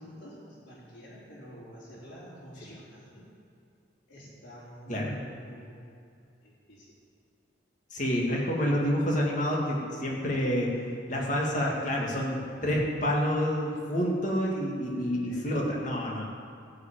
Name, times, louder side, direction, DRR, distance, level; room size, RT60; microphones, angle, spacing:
voice 1, 0.0-3.2 4.1-5.9 6.4-6.9 11.2-11.3 11.6-12.0 14.9-15.5, equal, 80° left, -10 dB, 3.7 m, -47 dB
voice 2, 7.9-16.2, equal, 45° left, -2 dB, 2.1 m, -28 dB
13.5 x 5.7 x 8.9 m, 2.4 s
head